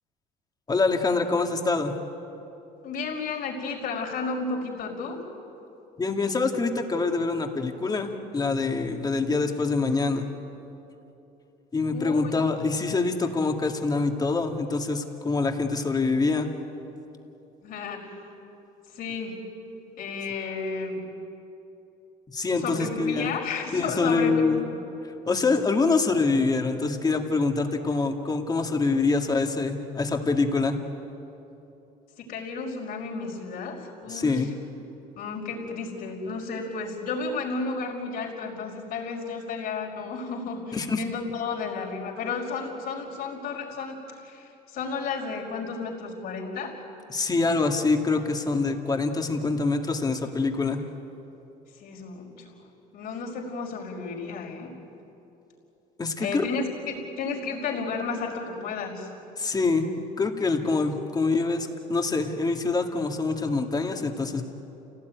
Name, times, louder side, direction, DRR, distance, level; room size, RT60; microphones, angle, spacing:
voice 1, 0.7-1.9 6.0-10.3 11.7-16.5 22.3-23.4 23.7-24.6 25.3-30.8 34.1-34.5 40.7-41.0 47.1-50.8 56.0-56.4 59.4-59.8 60.2-64.4, left 3 dB, 25° left, 4 dB, 2.1 m, -25 dB
voice 2, 2.8-5.3 11.9-12.4 17.6-18.1 18.9-19.4 20.0-21.0 22.6-24.6 32.2-34.5 35.2-46.8 51.7-52.5 52.9-54.7 56.2-59.1, left 4 dB, 65° left, -2 dB, 5.1 m, -32 dB
28.0 x 17.5 x 9.4 m, 3.0 s
cardioid pair, 115°, 17 cm